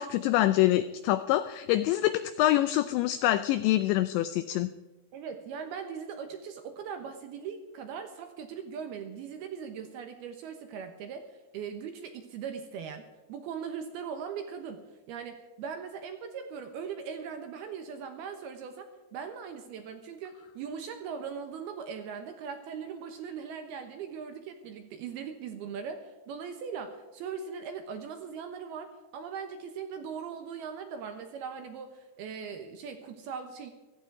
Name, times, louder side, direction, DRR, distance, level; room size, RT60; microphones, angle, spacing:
voice 1, 0.0-4.7, left 14 dB, 90° left, 12 dB, 2.5 m, -25 dB
voice 2, 5.1-11.3 11.5-33.7, right 6 dB, 70° right, 7 dB, 2.4 m, -40 dB
16.5 x 14.5 x 4.7 m, 1.2 s
omnidirectional pair, 5.8 m